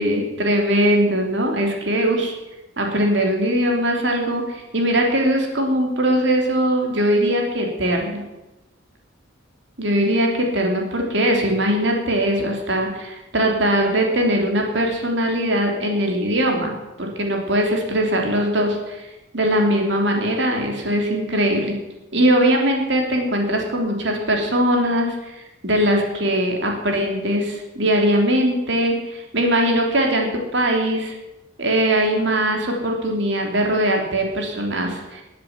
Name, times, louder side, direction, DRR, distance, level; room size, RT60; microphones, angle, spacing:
voice 1, 0.0-2.3 2.8-8.1 9.8-16.7 17.0-19.0 19.3-21.7 22.1-31.1 31.6-35.2, equal, 65° right, 1 dB, 3.1 m, -21 dB
20.0 x 7.8 x 7.4 m, 1.0 s
head